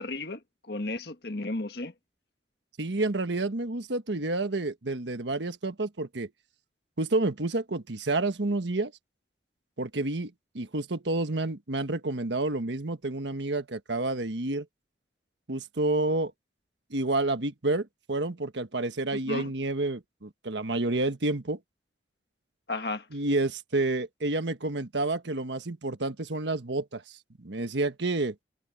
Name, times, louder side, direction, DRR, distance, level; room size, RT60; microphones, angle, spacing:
voice 1, 0.0-1.9 19.1-19.5 22.7-23.1, left 2 dB, 60° left, 1.6 m, -34 dB
voice 2, 2.8-6.3 7.0-8.9 9.8-14.6 15.5-16.3 16.9-21.6 23.1-28.3, right 2 dB, 75° right, 1.4 m, -29 dB
head